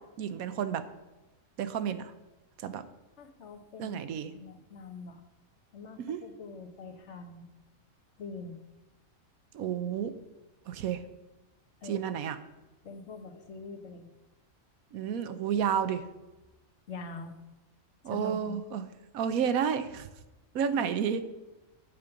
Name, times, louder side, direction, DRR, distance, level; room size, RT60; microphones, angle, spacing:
voice 1, 0.2-0.8 1.6-2.1 2.6-2.8 3.8-4.3 6.0-6.2 9.5-10.1 10.7-11.0 11.8-12.4 14.9-16.0 18.0-18.9 19.1-20.1 20.5-21.2, right 8 dB, 90° right, 11 dB, 1.2 m, -31 dB
voice 2, 3.2-4.0 4.3-5.2 5.7-7.5 8.2-8.6 11.8-12.0 12.8-14.1 16.9-17.4 18.1-18.6 20.7-21.0, left 3 dB, 55° left, 4 dB, 1.4 m, -43 dB
9.3 x 5.2 x 7.0 m, 1.1 s
omnidirectional pair, 1.4 m